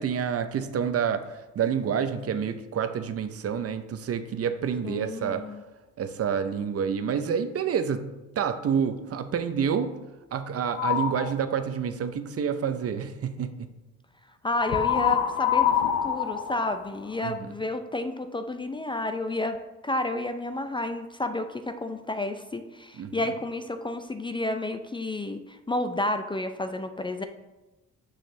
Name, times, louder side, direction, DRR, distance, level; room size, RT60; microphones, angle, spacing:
voice 1, 0.0-5.4 6.0-9.9 10.3-13.5 17.2-17.3 23.0-23.1, right 7 dB, 50° right, 9 dB, 0.7 m, -28 dB
voice 2, 4.8-5.6 14.4-15.7 16.0-19.6 19.8-27.2, left 2 dB, 15° left, 8 dB, 0.4 m, -31 dB
sound 1, 10.7-11.3 14.6-17.4, left 9 dB, 80° left, 0.7 m, -25 dB
6.5 x 6.4 x 3.2 m, 1.1 s
cardioid pair, 90°, 30 cm